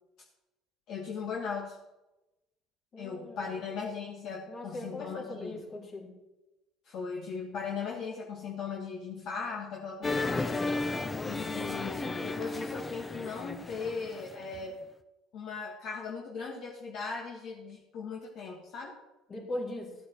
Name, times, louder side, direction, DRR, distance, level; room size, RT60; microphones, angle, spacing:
voice 1, 0.9-1.8 3.0-5.6 6.9-10.6 11.2-14.8 15.3-18.9, left 5 dB, 65° left, -1 dB, 1.9 m, -38 dB
voice 2, 2.9-3.8 4.5-6.1 19.3-20.0, left 1 dB, 45° left, -1 dB, 4.0 m, -40 dB
sound 1, 10.0-14.6, left 3 dB, 20° left, 0.8 m, -34 dB
15.0 x 8.3 x 4.6 m, 1.0 s
supercardioid pair, 95°, 0 cm